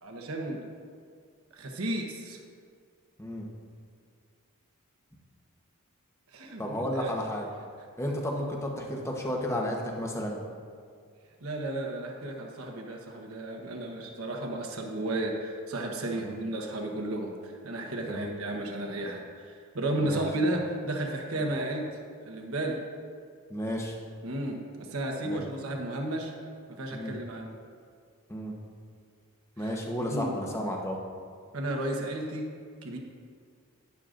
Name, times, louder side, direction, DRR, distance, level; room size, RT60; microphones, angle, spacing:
voice 1, 0.0-0.6 1.5-2.4 6.3-7.1 11.4-21.9 22.3-22.8 24.2-26.3 26.7-27.5 29.6-29.7 30.1-30.3 31.5-32.5 32.8-33.0, right 1 dB, 75° right, 2 dB, 1.2 m, -33 dB
voice 2, 6.6-7.5 8.0-10.4 16.2-16.3 18.1-18.4 20.0-20.3 23.5-24.0 25.2-25.4 26.9-27.1 28.3-28.5 29.6-31.0, equal, 15° left, 0 dB, 1.0 m, -32 dB
11.5 x 10.5 x 2.6 m, 2.1 s
head